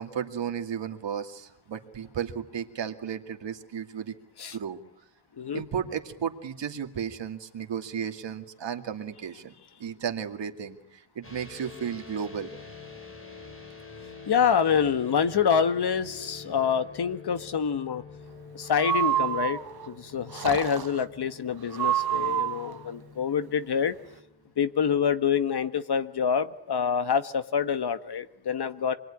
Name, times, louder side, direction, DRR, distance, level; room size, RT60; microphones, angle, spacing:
voice 1, 0.0-4.2 4.5-4.8 5.5-9.5 9.8-12.5, right 8 dB, 80° right, 6 dB, 2.4 m, -34 dB
sound 1, 11.2-25.4, left 4 dB, 30° left, 6.9 m, -47 dB
voice 2, 14.3-18.0 18.5-19.6 19.9-23.9 24.6-29.0, left 7 dB, 65° left, 10 dB, 1.6 m, -26 dB
Breathing, 18.7-19.9 20.3-21.0 21.7-22.8, right 11 dB, 60° right, 1.1 m, -28 dB
27.5 x 22.0 x 10.0 m, 0.83 s
wide cardioid pair, 145°, 42 cm